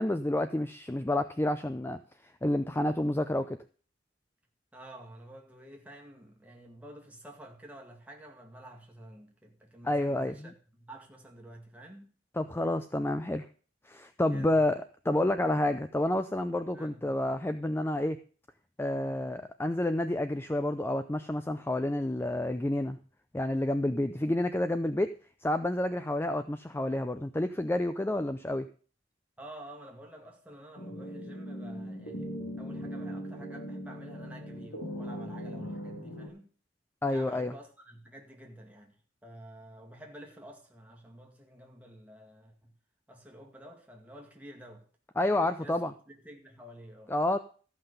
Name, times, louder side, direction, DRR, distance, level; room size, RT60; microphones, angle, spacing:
voice 1, 0.0-3.6 9.8-10.5 12.4-13.5 13.9-18.2 18.8-23.0 23.3-25.1 25.4-28.7 37.0-37.5 45.2-45.9 47.1-47.4, left 1 dB, 15° left, 0.5 m, -29 dB
voice 2, 4.7-12.1 14.3-14.6 16.7-17.1 29.4-32.3 32.6-36.5 37.1-42.7 43.1-44.9 45.6-45.8 46.1-47.1, right 1 dB, 10° right, 2.1 m, -50 dB
sound 1, 30.8-36.3, equal, 65° left, 2.5 m, -39 dB
14.0 x 5.8 x 6.7 m
head